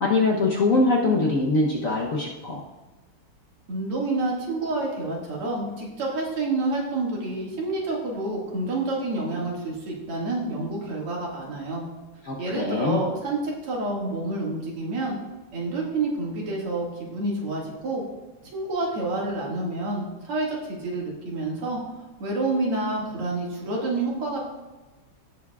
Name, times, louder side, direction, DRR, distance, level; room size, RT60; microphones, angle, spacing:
voice 1, 0.0-2.6 12.3-13.0, left 3 dB, 55° left, -1 dB, 0.9 m, -23 dB
voice 2, 3.7-11.9 12.4-15.2 15.5-18.0 18.5-21.8 22.2-24.4, right 2 dB, 85° right, -3 dB, 2.9 m, -28 dB
16.0 x 7.2 x 2.3 m, 1.2 s
omnidirectional pair, 2.4 m